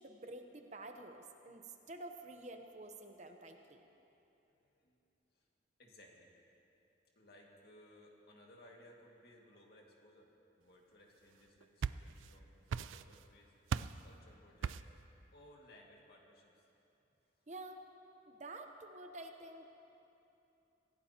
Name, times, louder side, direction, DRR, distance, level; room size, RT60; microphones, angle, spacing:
voice 1, 0.0-3.8 17.5-17.8 18.3-19.6, right 2 dB, 35° right, 5 dB, 0.8 m, -49 dB
voice 2, 4.5-5.0 5.3-5.5 5.8-6.3 7.2-10.3 10.6-13.5 14.0-14.8 15.3-16.8, left 1 dB, 55° left, -1 dB, 2.1 m, -61 dB
sound 1, 11.4-12.4 12.7-13.3 13.7-14.1 14.6-15.0, right 6 dB, 85° right, 0.4 m, -39 dB
25.5 x 16.5 x 2.9 m, 2.9 s
head